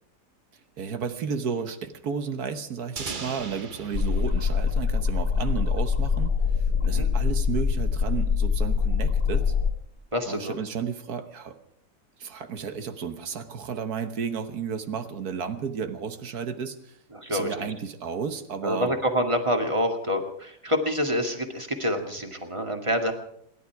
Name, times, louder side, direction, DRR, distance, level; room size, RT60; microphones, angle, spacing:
voice 1, 0.8-6.3 6.8-9.5 10.3-11.6 12.2-17.0 17.3-18.9, right 6 dB, 65° right, 9 dB, 1.6 m, -32 dB
sound 1, 3.0-5.7, right 5 dB, 35° right, 1.0 m, -39 dB
sound 2, 3.9-9.7, left 6 dB, 45° left, 1.4 m, -24 dB
voice 2, 10.1-10.5 17.1-17.7 18.6-23.1, equal, 20° right, 4 dB, 2.1 m, -27 dB
27.0 x 11.5 x 4.7 m, 0.71 s
omnidirectional pair, 1.8 m